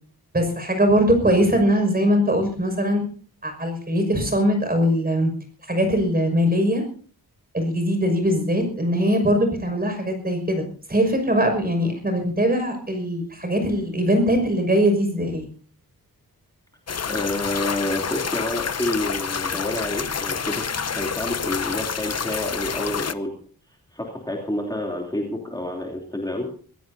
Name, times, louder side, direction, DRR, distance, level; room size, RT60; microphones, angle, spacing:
voice 1, 0.3-3.0 3.4-5.3 5.7-6.8 7.5-15.5, equal, 25° right, 5 dB, 5.9 m, -21 dB
sound 1, 16.9-23.1, left 6 dB, 40° left, 0.8 m, -28 dB
voice 2, 17.1-23.3 23.7-26.5, left 1 dB, 10° left, -1 dB, 3.1 m, -29 dB
24.5 x 16.5 x 2.8 m, 0.43 s
wide cardioid pair, 155°, 38 cm